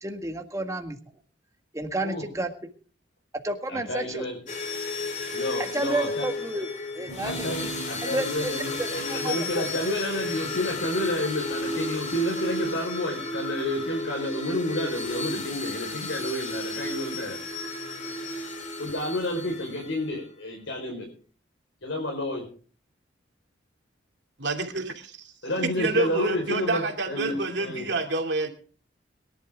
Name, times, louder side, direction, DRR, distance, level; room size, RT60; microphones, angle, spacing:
voice 1, 0.0-1.0 1.7-2.5 3.4-4.2 5.6-6.7 6.9-7.7 8.0-9.7, right 2 dB, 15° right, 5 dB, 1.8 m, -31 dB
voice 2, 3.7-4.4 5.3-6.2 7.2-17.4 18.8-21.1 21.8-22.4 25.4-26.8 27.1-27.8, left 1 dB, 80° left, 1 dB, 4.7 m, -30 dB
sound 1, 4.5-20.1, left 2 dB, 40° left, 3.0 m, -33 dB
voice 3, 24.4-25.3 25.8-28.5, right 3 dB, 65° right, 4 dB, 2.7 m, -28 dB
22.5 x 11.5 x 3.7 m, 0.41 s
head